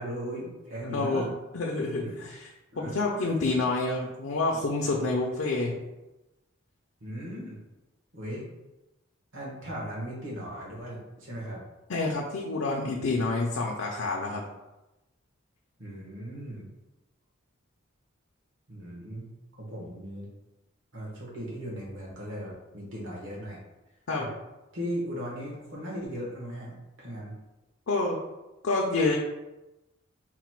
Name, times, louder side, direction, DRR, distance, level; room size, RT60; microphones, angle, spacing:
voice 1, 0.0-1.3 1.8-2.1 2.7-3.6 7.0-7.6 8.1-8.5 9.3-11.6 15.8-16.7 18.7-19.3 19.6-20.3 20.9-23.6 24.2-24.3 24.7-27.3, equal, 65° right, -5 dB, 1.2 m, -38 dB
voice 2, 0.9-1.3 1.5-2.5 2.8-5.8 11.9-14.4 24.1-24.3 27.9-28.2 28.6-29.2, left 3 dB, 65° left, -1 dB, 0.5 m, -28 dB
4.1 x 2.2 x 4.4 m, 1.0 s
head